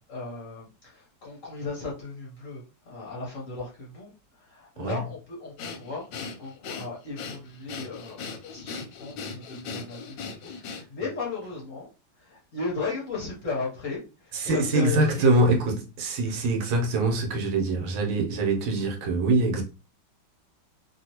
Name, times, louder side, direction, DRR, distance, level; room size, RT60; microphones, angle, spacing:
voice 1, 0.0-11.9 12.2-15.5 16.3-16.5, left 3 dB, 55° left, 1.0 m, -36 dB
Breathing, 5.6-11.1, left 5 dB, 75° left, 1.2 m, -38 dB
voice 2, 14.3-19.6, right 2 dB, 75° right, 1.6 m, -24 dB
3.0 x 2.8 x 2.8 m
omnidirectional pair, 2.2 m